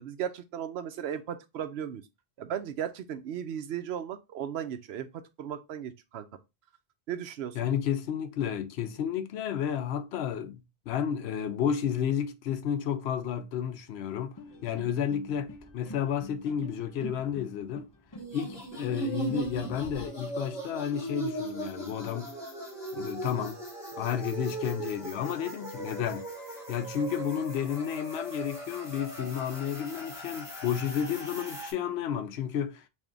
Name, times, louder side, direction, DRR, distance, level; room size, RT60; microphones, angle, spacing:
voice 1, 0.0-2.0 2.4-6.3 7.1-7.6, right 9 dB, 85° right, 0.9 m, -36 dB
voice 2, 7.5-14.4 14.6-17.9 18.3-22.3 22.9-23.6 24.0-26.3 26.7-32.8, left 8 dB, 85° left, 0.8 m, -31 dB
sound 1, 14.4-20.1, left 1 dB, 25° left, 0.6 m, -47 dB
sound 2, 18.2-31.7, right 2 dB, 5° right, 1.5 m, -38 dB
3.5 x 2.7 x 3.8 m
omnidirectional pair, 1.1 m